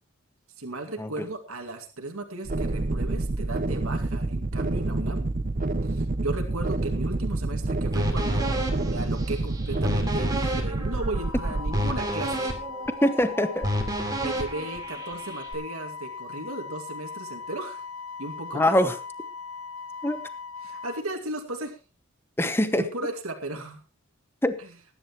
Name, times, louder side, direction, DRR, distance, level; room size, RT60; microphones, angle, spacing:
voice 1, 0.6-5.3 5.8-12.6 14.2-17.8 18.2-18.7 20.6-21.8 22.7-23.8 24.6-24.7, right 2 dB, 75° right, 2.3 m, -35 dB
sound 1, 2.4-11.9, right 2 dB, 40° right, 0.6 m, -28 dB
sound 2, 7.9-15.5, equal, 15° right, 2.7 m, -31 dB
Wind instrument woodwind instrument, 11.1-21.0, left 5 dB, 65° left, 0.9 m, -39 dB
voice 2, 13.0-13.7 18.5-19.0 20.0-20.2 22.4-22.9 24.4-24.6, left 1 dB, 10° left, 1.0 m, -23 dB
20.0 x 11.0 x 3.1 m
head